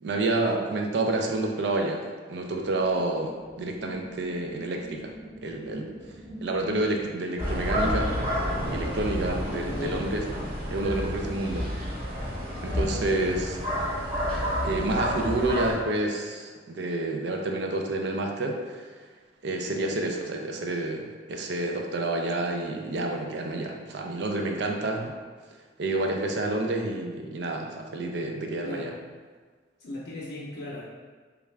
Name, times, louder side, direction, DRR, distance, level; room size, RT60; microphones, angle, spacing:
voice 1, 0.0-5.1 5.4-5.9 6.4-8.2 8.7-10.2 10.7-11.7 12.6-13.6 14.6-18.8 19.4-25.1 25.8-28.9, right 2 dB, 70° right, 2 dB, 0.4 m, -29 dB
sound 1, 2.4-7.4, right 1 dB, 10° left, 0.6 m, -46 dB
sound 2, 7.4-15.7, equal, 35° right, 1.2 m, -30 dB
voice 2, 9.7-10.1 28.6-29.0 29.8-30.8, left 1 dB, 70° left, -7 dB, 0.5 m, -37 dB
3.4 x 2.4 x 3.2 m, 1.5 s
head